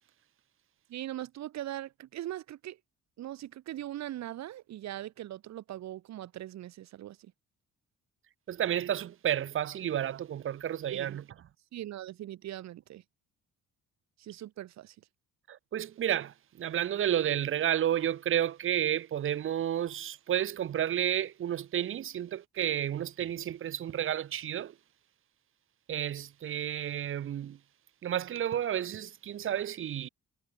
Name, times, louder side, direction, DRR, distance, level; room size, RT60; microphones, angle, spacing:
voice 1, 0.9-2.8 3.2-7.3 10.9-11.2 11.7-13.0 14.2-15.0, right 13 dB, 65° right, 6.8 m, -40 dB
voice 2, 8.5-11.2 15.5-24.8 25.9-27.6 28.0-30.1, right 10 dB, 45° right, 1.8 m, -31 dB
cardioid pair, 180°, 29 cm